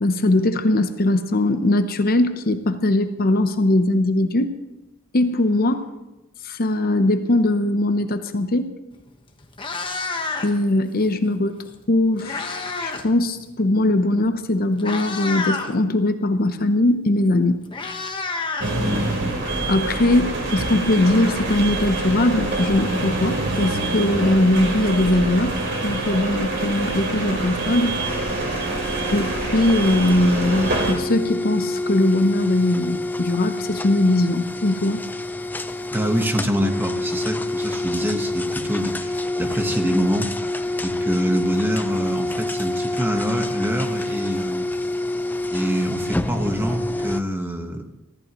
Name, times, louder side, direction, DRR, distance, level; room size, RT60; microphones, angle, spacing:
voice 1, 0.0-4.5 5.1-5.9 6.4-8.7 10.4-11.5 11.9-17.6 19.7-25.5 25.8-27.9 29.1-35.0, left 1 dB, 45° left, 8 dB, 0.8 m, -20 dB
Meow, 8.9-9.1 9.4-10.7 11.8-13.1 13.4-13.7 14.4-14.5 14.8-15.7 17.0-17.1 17.4-19.3, left 3 dB, 25° left, 1.3 m, -29 dB
sound 1, 18.6-30.9, right 2 dB, 60° right, 3.4 m, -25 dB
sound 2, 28.0-47.2, left 2 dB, 10° left, 0.5 m, -27 dB
voice 2, 35.9-40.3 40.8-44.6 45.5-47.8, equal, 10° right, 4 dB, 1.2 m, -25 dB
23.5 x 14.5 x 3.1 m, 0.99 s
head